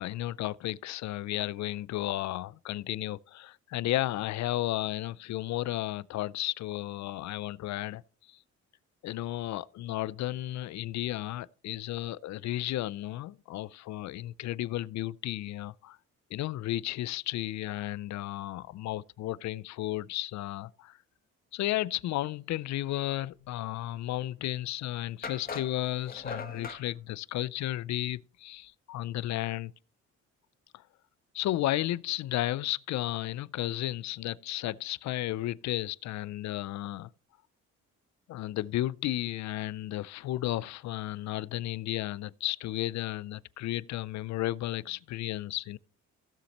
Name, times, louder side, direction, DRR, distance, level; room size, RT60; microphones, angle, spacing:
voice 1, 0.0-8.0 8.3-8.4 9.0-16.0 16.3-21.0 21.5-29.7 30.7-30.8 31.3-37.1 38.3-45.8, left 15 dB, 65° left, 0.5 m, -33 dB
sound 1, 24.4-24.5 25.2-26.8, left 4 dB, 30° left, 1.3 m, -40 dB
16.0 x 7.1 x 2.9 m
cardioid pair, 90°, 30 cm